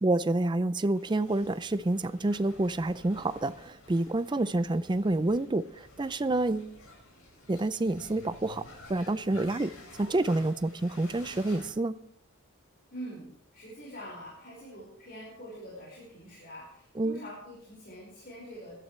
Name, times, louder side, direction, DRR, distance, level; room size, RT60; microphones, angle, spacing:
voice 1, 0.0-6.7 7.5-9.7 10.0-11.9 17.0-17.2, right 2 dB, 20° right, 0.4 m, -28 dB
sound 1, 0.9-11.7, left 1 dB, 90° left, 6.0 m, -51 dB
voice 2, 12.9-18.7, equal, 45° left, 5.3 m, -45 dB
20.5 x 12.5 x 3.3 m
head